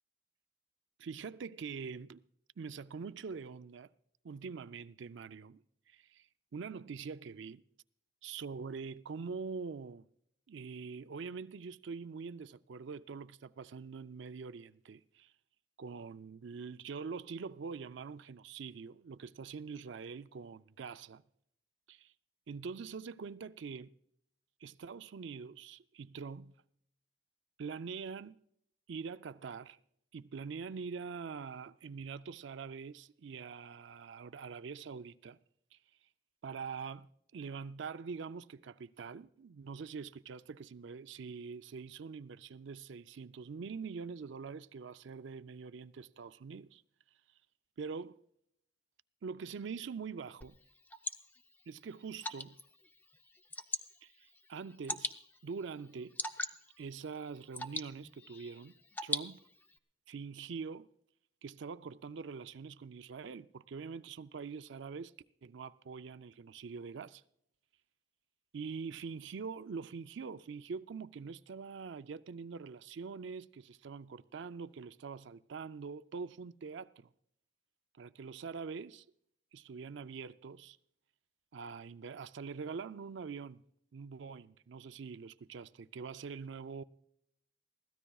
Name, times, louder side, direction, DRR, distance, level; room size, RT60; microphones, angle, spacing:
voice 1, 1.0-2.2 2.6-3.9 4.2-5.6 5.9-7.6 8.2-10.1 10.5-15.3 15.8-21.2 21.9-22.1 22.5-23.9 24.6-26.6 27.6-28.4 28.9-29.8 30.1-35.4 35.7-35.8 36.4-46.8 47.8-48.2 49.2-50.6 51.7-52.6 54.0-55.1 55.4-56.2 56.8-58.7 59.0-59.4 60.1-60.9 61.4-65.1 65.4-67.2 68.5-77.1 78.0-79.0 79.5-80.8 81.5-83.6 83.9-86.8, right 5 dB, 75° right, 0.4 m, -44 dB
Water / Drip, 50.4-59.8, left 2 dB, 10° left, 0.5 m, -43 dB
23.0 x 16.5 x 2.4 m
head